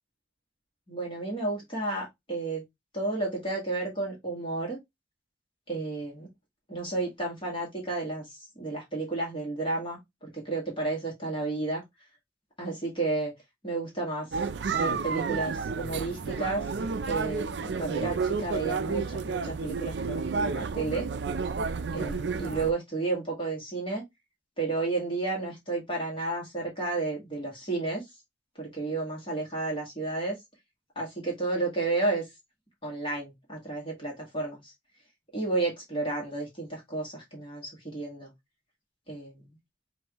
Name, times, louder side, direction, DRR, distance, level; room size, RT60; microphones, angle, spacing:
voice 1, 0.9-2.6 2.9-4.8 5.7-6.3 6.7-11.8 12.6-13.3 13.6-14.3 14.7-16.6 17.1-21.1 21.9-24.0 24.6-28.0 28.6-30.4 31.0-32.3 32.8-34.7 35.3-38.3 39.1-39.6, right 3 dB, 30° left, 1.8 m, -32 dB
sound 1, 14.3-22.7, right 4 dB, 65° right, 0.5 m, -31 dB
6.1 x 2.7 x 2.9 m
head